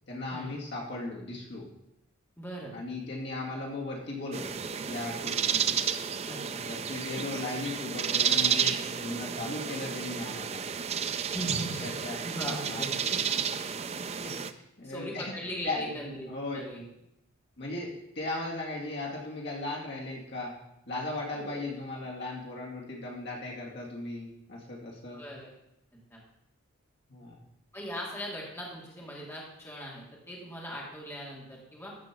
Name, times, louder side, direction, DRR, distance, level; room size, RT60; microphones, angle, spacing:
voice 1, 0.1-1.6 2.7-4.5 4.9-5.6 6.7-10.7 11.8-13.3 14.1-15.3 15.6-16.6 17.6-17.9 18.2-20.5 20.9-25.2 27.1-27.4, left 2 dB, 50° left, -2 dB, 2.1 m, -37 dB
voice 2, 2.4-2.8 5.5-5.7 6.3-6.7 11.3-11.8 12.2-13.4 14.8-16.8 21.3-21.6 25.1-25.5 26.1-26.2 27.7-32.0, equal, 10° left, -4 dB, 2.4 m, -40 dB
sound 1, 4.3-14.5, right 7 dB, 30° right, 0.4 m, -31 dB
14.0 x 5.1 x 6.0 m, 0.83 s
head